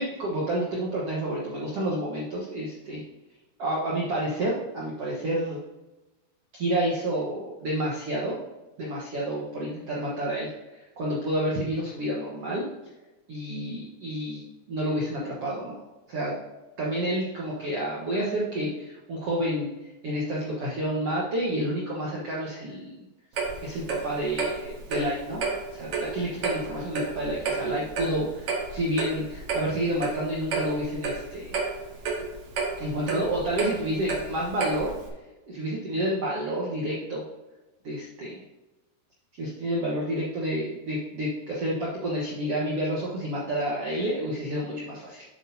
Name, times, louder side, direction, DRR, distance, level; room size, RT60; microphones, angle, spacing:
voice 1, 0.0-3.0 3.6-5.6 6.6-8.3 8.8-12.6 13.3-14.4 14.7-15.8 16.1-16.3 16.8-23.1 23.6-25.4 25.7-31.6 32.8-34.9 35.5-37.2 37.8-38.4 39.4-45.2, right 1 dB, 85° right, -5 dB, 1.3 m, -29 dB
Clock, 23.3-35.1, right 4 dB, 55° right, 1.7 m, -31 dB
8.8 x 7.9 x 2.8 m, 1.1 s
omnidirectional pair, 4.9 m